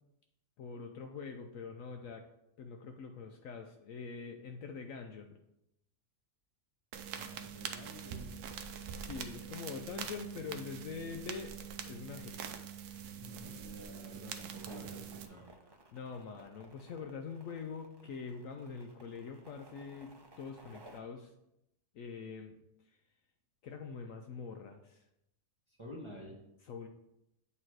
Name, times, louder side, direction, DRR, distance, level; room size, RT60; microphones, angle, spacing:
voice 1, 0.6-2.3 2.6-5.4 8.8-11.5 11.9-12.4 15.9-21.3 21.9-22.6 23.6-25.0 26.7-26.9, left 5 dB, 70° left, 4 dB, 0.9 m, -44 dB
sound 1, 6.9-15.3, right 7 dB, 80° right, 1.1 m, -44 dB
voice 2, 7.1-8.4 13.2-15.7 25.7-26.3, equal, 20° right, -3 dB, 1.0 m, -50 dB
sound 2, 14.6-21.0, right 2 dB, 35° right, 0.3 m, -58 dB
8.4 x 3.0 x 4.6 m, 0.84 s
omnidirectional pair, 1.7 m